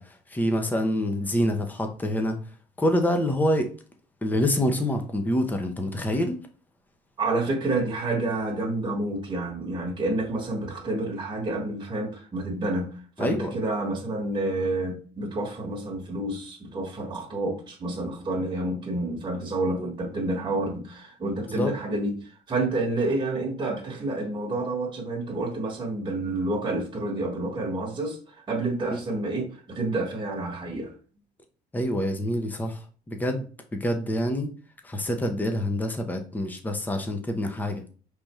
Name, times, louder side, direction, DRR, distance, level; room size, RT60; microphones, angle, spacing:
voice 1, 0.0-2.4 2.8-3.7 4.2-6.5 13.2-13.6 21.5-21.7 28.9-29.0 31.7-34.5 34.8-37.8, equal, 10° left, 0.8 m, -26 dB
voice 2, 7.2-30.9, right 2 dB, 25° right, 1.4 m, -29 dB
5.1 x 3.4 x 3.1 m
cardioid pair, 110°, 17 cm